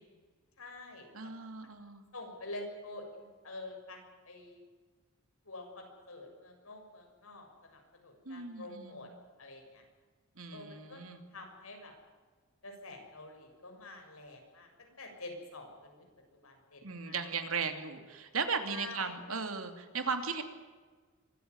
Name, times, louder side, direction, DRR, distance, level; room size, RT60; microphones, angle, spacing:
voice 1, 0.6-1.3 2.1-4.6 5.5-9.1 9.4-9.8 10.5-11.0 11.3-11.9 12.6-17.3 18.7-19.2, left 2 dB, 80° left, 3 dB, 6.9 m, -47 dB
voice 2, 1.1-2.0 8.2-9.1 10.4-11.2 16.8-20.4, right 5 dB, 75° right, 6 dB, 2.7 m, -37 dB
24.0 x 14.5 x 9.8 m, 1.4 s
head